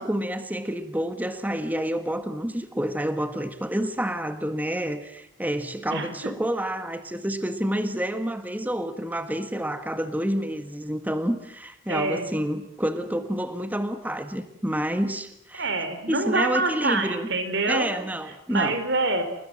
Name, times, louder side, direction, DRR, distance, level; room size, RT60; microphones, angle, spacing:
voice 1, 0.0-15.7 16.1-17.3 17.7-18.8, equal, 10° right, 9 dB, 1.5 m, -28 dB
voice 2, 11.9-12.3 15.5-17.9 18.5-19.2, right 3 dB, 60° right, 10 dB, 4.1 m, -26 dB
29.5 x 21.0 x 7.7 m, 0.75 s
head